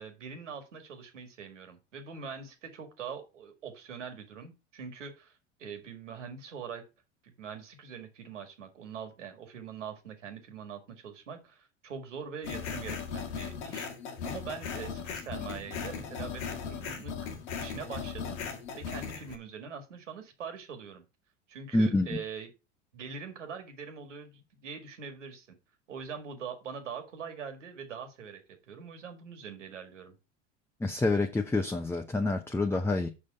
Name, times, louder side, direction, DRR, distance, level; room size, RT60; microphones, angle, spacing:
voice 1, 0.0-6.9 7.2-13.9 14.2-17.3 17.6-18.4 18.7-21.0 21.5-22.5 22.9-25.6 25.9-30.2, right 6 dB, 85° right, 1.9 m, -43 dB
sound 1, 12.4-19.4, left 6 dB, 70° left, 1.7 m, -38 dB
voice 2, 21.7-22.1 30.8-33.1, left 2 dB, 5° left, 0.8 m, -27 dB
6.5 x 5.5 x 5.4 m
hypercardioid pair, 85°, 36 cm